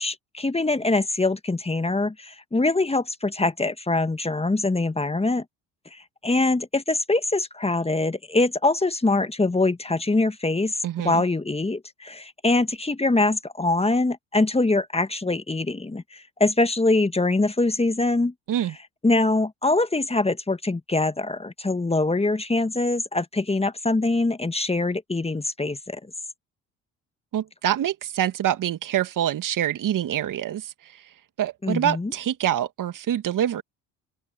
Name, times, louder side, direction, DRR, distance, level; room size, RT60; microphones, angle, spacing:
voice 1, 0.0-5.4 5.9-18.3 19.0-26.0 31.6-32.1, left 2 dB, 15° left, 1.9 m, -23 dB
voice 2, 10.8-11.2 18.5-18.7 27.3-31.0 31.4-33.6, right 11 dB, 55° right, 2.3 m, -26 dB
open air
hypercardioid pair, 55°, 39 cm